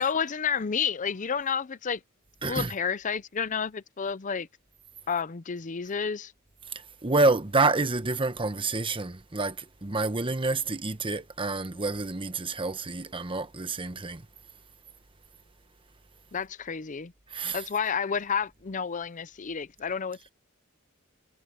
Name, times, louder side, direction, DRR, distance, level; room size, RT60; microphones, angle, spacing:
voice 1, 0.0-2.0 2.5-4.5 5.1-6.3 16.3-17.1 17.5-20.3, left 6 dB, 40° left, 0.6 m, -30 dB
voice 2, 2.4-2.7 6.7-14.3 17.3-17.7, right 3 dB, 25° right, 1.1 m, -28 dB
head